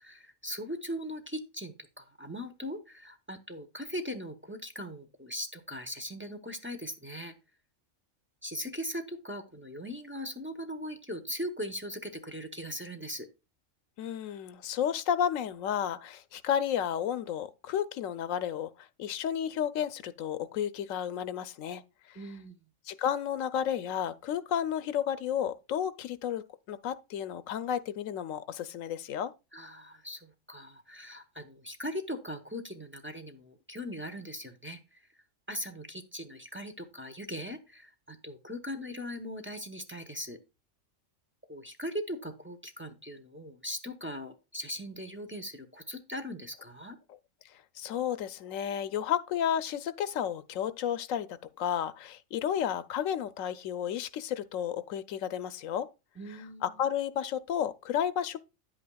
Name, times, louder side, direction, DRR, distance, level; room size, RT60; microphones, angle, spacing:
voice 1, 0.0-7.3 8.4-13.3 22.1-22.5 29.5-35.0 35.5-40.4 41.5-47.0 56.2-56.7, equal, 10° right, 0.7 m, -40 dB
voice 2, 14.0-21.8 22.1-22.2 22.9-29.3 47.8-55.9 56.6-58.4, left 9 dB, 80° left, 1.0 m, -32 dB
9.8 x 8.5 x 2.3 m
omnidirectional pair, 1.4 m